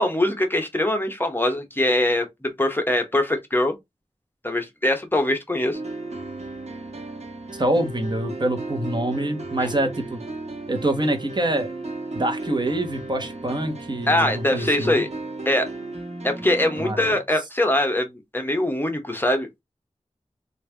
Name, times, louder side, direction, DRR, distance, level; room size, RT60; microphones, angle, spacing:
voice 1, 0.0-3.7 4.4-5.8 9.6-9.7 14.1-15.1 15.5-15.7 16.2-18.1 18.3-19.5, left 1 dB, 20° left, 0.9 m, -22 dB
sound 1, 5.7-16.9, right 2 dB, 70° right, 1.3 m, -35 dB
voice 2, 7.5-10.2 10.7-11.7 12.1-15.0 16.8-17.2, right 1 dB, 40° right, 1.0 m, -25 dB
3.2 x 2.5 x 3.3 m
wide cardioid pair, 75°, 12 cm